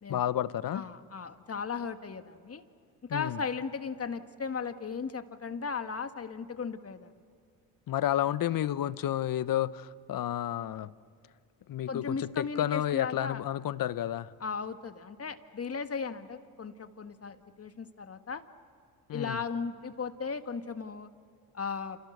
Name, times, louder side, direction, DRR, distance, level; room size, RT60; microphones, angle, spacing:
voice 1, 0.1-0.8 3.1-3.4 7.9-10.9 11.7-14.3 19.1-19.4, left 12 dB, 50° left, 0.9 m, -31 dB
voice 2, 0.7-2.6 3.1-7.1 11.9-13.4 14.4-18.4 19.1-21.1 21.5-22.0, left 5 dB, 35° left, 1.8 m, -36 dB
29.0 x 27.5 x 6.7 m
supercardioid pair, 65°, 43 cm